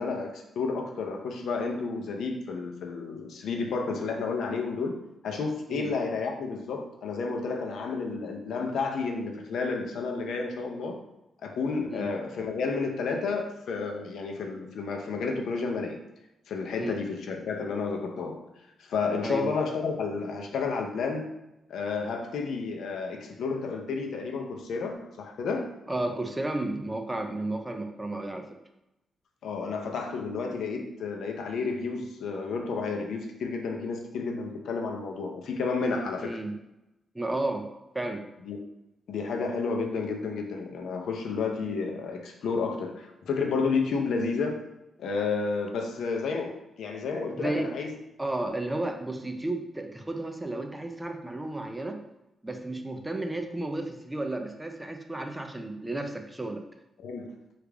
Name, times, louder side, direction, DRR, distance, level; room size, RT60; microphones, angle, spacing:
voice 1, 0.0-11.0 11.4-16.0 16.5-18.4 18.8-21.3 21.7-25.7 29.4-36.4 38.5-38.6 39.1-44.6 45.0-47.9 57.0-57.3, left 4 dB, 80° left, 3 dB, 0.5 m, -31 dB
voice 2, 25.9-28.5 36.2-36.6 37.1-37.7 37.9-38.3 47.3-47.7 48.2-52.0 52.4-56.6, right 2 dB, 10° right, 5 dB, 0.4 m, -32 dB
3.3 x 2.4 x 3.3 m, 0.91 s
cardioid pair, 110°, 0 cm